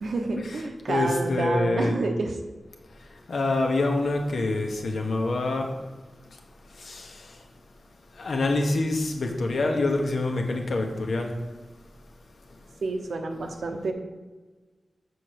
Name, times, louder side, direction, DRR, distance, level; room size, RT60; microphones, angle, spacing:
voice 1, 0.0-2.4 12.8-13.9, right 3 dB, 80° right, 4 dB, 0.9 m, -28 dB
voice 2, 0.9-2.0 3.3-5.7 6.8-7.3 8.2-11.4, left 2 dB, 75° left, 2 dB, 1.1 m, -26 dB
6.9 x 4.6 x 6.6 m, 1.3 s
wide cardioid pair, 125°, 0 cm